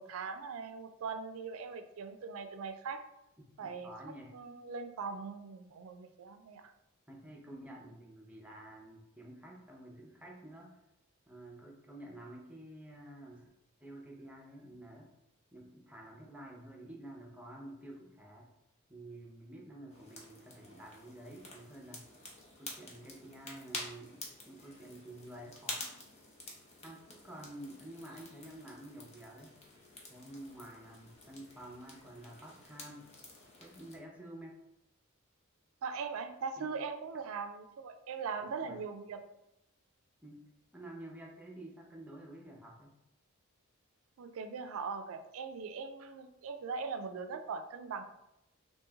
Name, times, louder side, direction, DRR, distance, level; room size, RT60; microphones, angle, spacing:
voice 1, 0.0-3.0 3.6-3.9 4.3-6.7 35.8-39.2 44.2-48.0, right 5 dB, 75° right, 8 dB, 0.4 m, -40 dB
voice 2, 3.4-4.4 7.1-10.8 11.3-13.5 13.8-15.1 15.5-18.5 18.9-22.1 22.6-25.9 26.8-29.6 30.1-33.1 33.6-34.6 36.6-36.7 38.4-38.8 40.2-40.4 40.7-42.9, right 1 dB, 5° right, -1 dB, 0.6 m, -50 dB
sound 1, 19.9-34.0, left 2 dB, 30° left, 0.7 m, -49 dB
3.1 x 2.7 x 3.4 m, 0.87 s
head